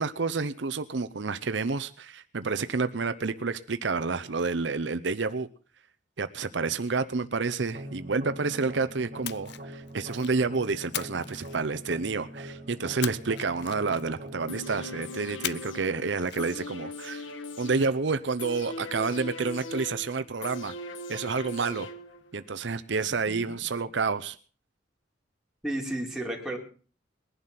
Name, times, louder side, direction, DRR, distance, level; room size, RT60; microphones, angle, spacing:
voice 1, 0.0-5.5 6.2-17.3 17.6-20.7 21.1-21.9 22.3-24.4, right 4 dB, 65° right, 11 dB, 0.7 m, -29 dB
sound 1, 7.7-16.7, right 1 dB, 45° right, 3.3 m, -44 dB
Splash splatter, 9.2-10.4 10.9-12.1 13.0-14.3 15.4-15.9 16.2-16.4, left 12 dB, 60° left, 0.7 m, -38 dB
sound 2, 14.5-22.5 22.8-22.9, left 2 dB, 85° left, 1.6 m, -40 dB
voice 2, 25.6-26.6, right 1 dB, ahead, -1 dB, 4.1 m, -33 dB
21.0 x 11.5 x 5.9 m, 0.42 s
head